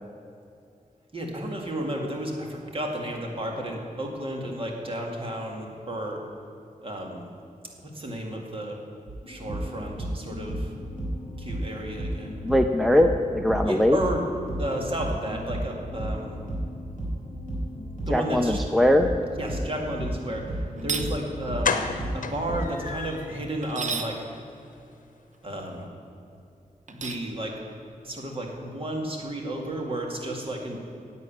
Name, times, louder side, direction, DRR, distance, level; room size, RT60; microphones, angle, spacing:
voice 1, 1.1-6.2 6.8-7.3 7.8-8.8 9.3-10.7 11.4-12.4 13.6-14.3 14.6-16.4 18.1-18.7 19.3-21.9 22.1-24.3 25.4-25.9 26.9-27.6 28.0-30.8, right 1 dB, 40° right, 0 dB, 2.0 m, -32 dB
sound 1, 9.1-22.6, right 1 dB, 75° right, 3.8 m, -33 dB
voice 2, 12.4-14.0 18.1-19.1, left 1 dB, ahead, 6 dB, 0.5 m, -21 dB
sound 2, 20.8-21.1 23.6-24.1 26.9-27.3, right 5 dB, 60° right, 0.8 m, -31 dB
sound 3, 21.0-21.1 21.6-23.4 23.8-23.9 24.2-24.4 24.6-24.7, left 5 dB, 70° left, 0.8 m, -30 dB
11.0 x 8.3 x 8.6 m, 2.5 s
wide cardioid pair, 140°, 14 cm